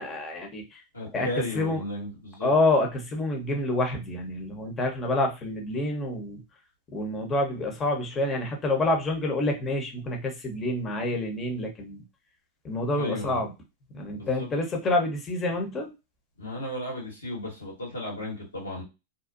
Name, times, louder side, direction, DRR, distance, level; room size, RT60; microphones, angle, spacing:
voice 1, 0.0-0.8 1.1-1.8 2.4-6.4 6.9-12.0 12.6-13.5 13.9-15.9, left 2 dB, 25° left, 2 dB, 0.9 m, -27 dB
voice 2, 0.9-2.5 12.9-13.4 14.1-14.5 16.4-18.8, left 1 dB, 90° left, -3 dB, 1.4 m, -34 dB
2.6 x 2.2 x 2.5 m, 0.26 s
hypercardioid pair, 95°, 0 cm